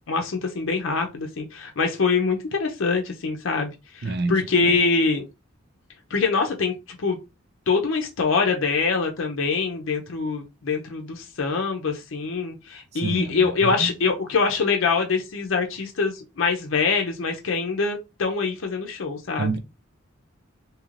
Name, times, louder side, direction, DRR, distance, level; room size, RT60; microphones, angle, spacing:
voice 1, 0.1-5.2 6.1-7.2 7.7-19.5, left 4 dB, 75° left, 0.6 m, -24 dB
voice 2, 4.0-4.7 13.0-13.9 19.4-19.6, right 3 dB, 55° right, 0.5 m, -28 dB
3.1 x 2.7 x 2.4 m
head